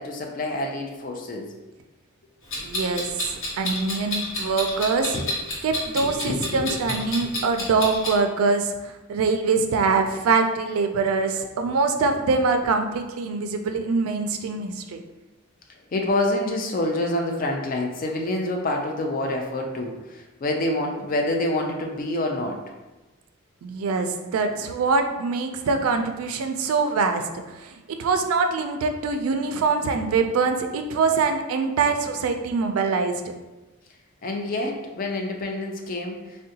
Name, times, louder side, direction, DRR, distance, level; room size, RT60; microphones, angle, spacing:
voice 1, 0.0-1.5 5.1-5.3 6.0-7.0 7.2-7.3 15.9-22.6 34.2-36.4, left 1 dB, 40° left, 1 dB, 0.4 m, -27 dB
Clock, 2.5-8.2, left 1 dB, 65° left, 0.9 m, -30 dB
voice 2, 2.6-5.2 5.6-15.0 23.6-33.3, right 4 dB, 90° right, 6 dB, 0.3 m, -24 dB
3.6 x 2.1 x 2.7 m, 1.1 s
head